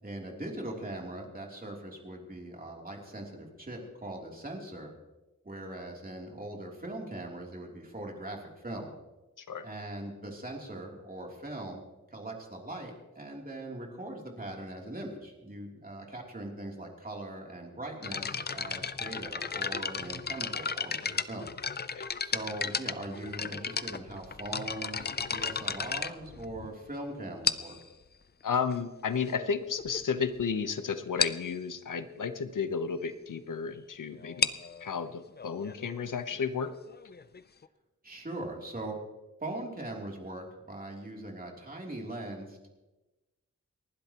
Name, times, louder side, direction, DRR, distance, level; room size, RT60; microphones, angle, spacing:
voice 1, 0.0-4.9 5.4-8.9 9.6-11.8 12.1-21.5 22.2-27.8 38.0-38.9 39.4-42.7, right 1 dB, 30° right, 0 dB, 3.1 m, -41 dB
sound 1, 18.0-26.9 27.4-27.9 28.7-28.8 29.4-29.5 29.8-30.0 30.3-30.4 30.7-30.8 31.2-31.5 34.2-37.7, left 5 dB, 30° left, 0.5 m, -34 dB
voice 2, 28.4-34.5 34.8-36.8, left 6 dB, 80° left, 10 dB, 1.0 m, -33 dB
29.5 x 12.0 x 3.0 m, 1.1 s
wide cardioid pair, 120°, 31 cm